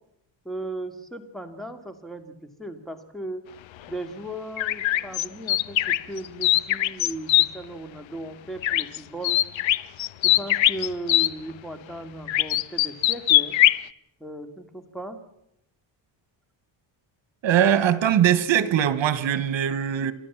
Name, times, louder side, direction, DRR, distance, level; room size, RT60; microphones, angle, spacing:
voice 1, 0.4-3.5 3.9-9.4 10.2-13.5 14.2-15.2, right 1 dB, ahead, 2.3 m, -37 dB
sound 1, 4.6-7.5 8.6-9.0 9.2-11.3 12.3-13.8, left 14 dB, 75° left, 0.8 m, -21 dB
voice 2, 17.4-20.1, right 9 dB, 70° right, 1.5 m, -21 dB
28.5 x 13.0 x 7.3 m
cardioid pair, 115°, 46 cm